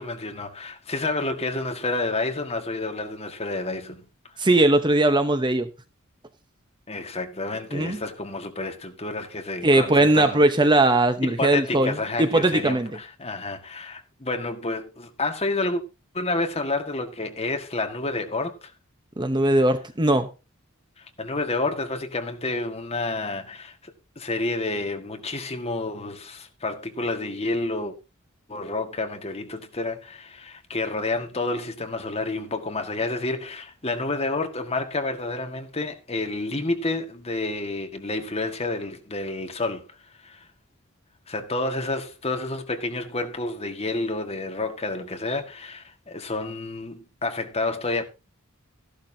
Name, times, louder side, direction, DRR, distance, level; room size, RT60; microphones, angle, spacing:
voice 1, 0.0-4.0 6.9-10.4 11.2-15.8 16.1-18.7 21.0-28.0 28.5-40.5 41.3-48.0, left 2 dB, 30° left, 1.8 m, -29 dB
voice 2, 4.4-5.7 7.7-8.0 9.6-12.9 19.2-20.3, right 2 dB, 20° right, 0.9 m, -20 dB
14.5 x 12.0 x 2.8 m
head